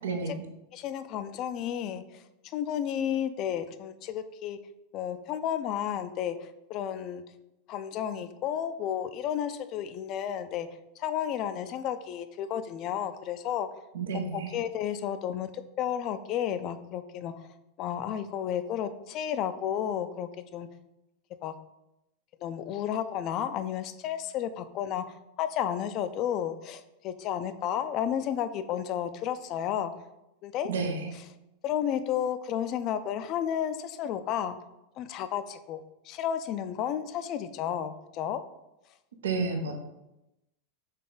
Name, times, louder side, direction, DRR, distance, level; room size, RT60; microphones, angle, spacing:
voice 1, 0.0-0.5 13.9-14.6 30.6-31.1 39.2-39.7, right 4 dB, 80° right, 4 dB, 0.6 m, -31 dB
voice 2, 0.7-2.0 2.5-4.6 4.9-7.2 7.7-10.7 11.0-13.7 14.3-15.5 15.8-17.3 17.8-20.7 21.4-21.5 22.4-29.9 30.4-30.7 31.6-34.6 35.0-38.4, left 9 dB, 45° left, 11 dB, 0.4 m, -32 dB
4.1 x 3.3 x 3.7 m, 0.93 s
hypercardioid pair, 100°, 0 cm